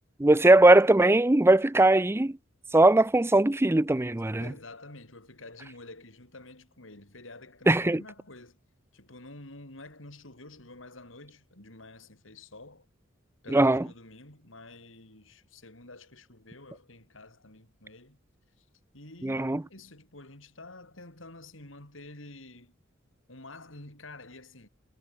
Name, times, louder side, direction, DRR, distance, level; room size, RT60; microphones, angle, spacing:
voice 1, 0.2-2.3 2.7-4.4 7.7-8.0 13.5-13.8 19.2-19.6, right 2 dB, 10° right, 0.6 m, -20 dB
voice 2, 4.4-8.6 8.9-12.9 13.4-18.2 18.6-18.7 18.9-22.7 23.3-24.7, left 2 dB, 80° left, 5.7 m, -49 dB
head